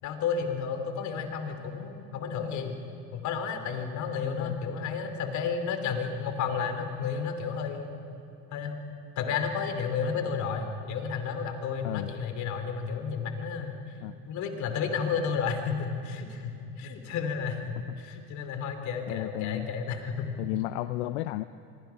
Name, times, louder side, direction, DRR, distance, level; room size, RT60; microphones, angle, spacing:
voice 1, 0.0-2.7 3.1-7.9 8.5-8.7 9.2-13.8 14.3-20.3, left 6 dB, 60° left, 6 dB, 3.0 m, -32 dB
voice 2, 19.1-19.7 20.4-21.4, left 18 dB, 85° left, 13 dB, 0.6 m, -33 dB
25.5 x 23.5 x 5.8 m, 2.5 s
supercardioid pair, 100°, 33 cm